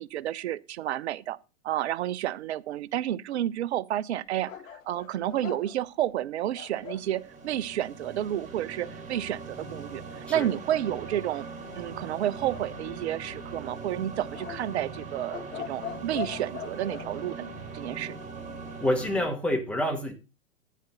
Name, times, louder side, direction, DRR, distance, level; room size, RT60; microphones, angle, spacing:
voice 1, 0.0-1.4 1.6-4.5 4.9-11.5 11.8-18.2, right 12 dB, 50° right, 0.7 m, -31 dB
sound 1, 4.5-7.1 12.5-13.3 14.3-17.1, left 8 dB, 70° left, 1.5 m, -41 dB
sound 2, 6.6-19.3, right 4 dB, 20° right, 3.9 m, -41 dB
voice 2, 18.8-20.1, left 1 dB, 5° left, 2.0 m, -27 dB
10.5 x 9.3 x 3.9 m
figure-of-eight pair, 110°, 41 cm